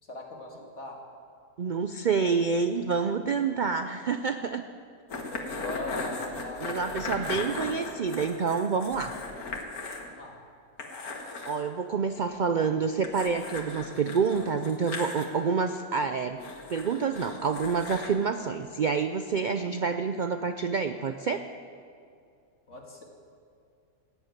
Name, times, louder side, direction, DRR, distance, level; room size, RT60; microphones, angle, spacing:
voice 1, 0.0-1.0 5.3-7.3 10.0-10.4 22.7-23.0, left 2 dB, 55° left, 0 dB, 2.4 m, -40 dB
voice 2, 1.6-4.6 6.6-9.2 11.5-16.4 16.7-21.4, right 5 dB, 80° right, 8 dB, 0.4 m, -28 dB
sound 1, 5.1-10.1 10.4-10.5 10.8-11.6 13.0-15.2 16.4-18.1, left 3 dB, 85° left, 2.0 m, -37 dB
16.0 x 8.1 x 9.0 m, 2.3 s
omnidirectional pair, 1.5 m